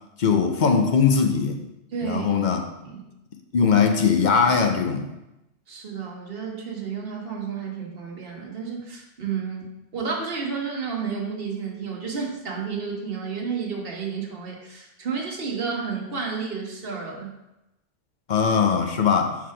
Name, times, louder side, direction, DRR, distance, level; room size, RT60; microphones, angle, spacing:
voice 1, 0.2-1.6 2.0-2.6 3.5-5.1 18.3-19.4, left 6 dB, 50° left, 5 dB, 0.6 m, -20 dB
voice 2, 1.9-2.3 2.8-3.0 5.7-9.7 9.9-17.3, right 5 dB, 55° right, 0 dB, 1.3 m, -31 dB
4.7 x 4.0 x 5.7 m, 0.92 s
omnidirectional pair, 1.2 m